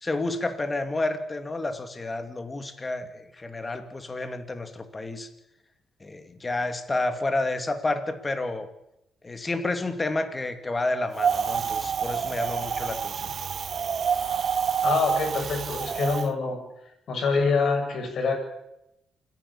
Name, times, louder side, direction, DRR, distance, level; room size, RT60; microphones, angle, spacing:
voice 1, 0.0-5.3 6.0-8.7 9.2-13.3, left 2 dB, 25° left, 8 dB, 2.5 m, -30 dB
Wind, 11.2-16.3, right 7 dB, 50° right, 0.8 m, -27 dB
voice 2, 14.8-16.6 17.1-18.3, left 4 dB, 60° left, 3 dB, 7.5 m, -25 dB
27.5 x 11.0 x 8.7 m, 0.84 s
cardioid pair, 90°, 0 cm